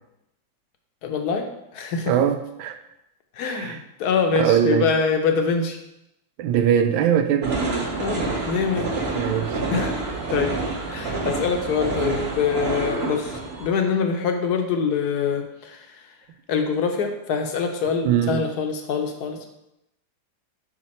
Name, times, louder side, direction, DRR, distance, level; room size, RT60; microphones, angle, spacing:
voice 1, 1.0-2.1 3.3-5.8 8.0-8.9 9.7-9.9 10.3-10.6 10.9-16.2 16.5-19.5, left 5 dB, 65° left, 4 dB, 1.1 m, -25 dB
voice 2, 2.1-2.8 3.5-3.8 4.4-4.9 6.4-7.6 9.1-9.6 18.0-18.4, right 9 dB, 90° right, 8 dB, 1.4 m, -21 dB
sound 1, 7.4-13.7, right 3 dB, 40° right, 1.0 m, -27 dB
5.7 x 5.2 x 4.2 m, 0.86 s
omnidirectional pair, 2.1 m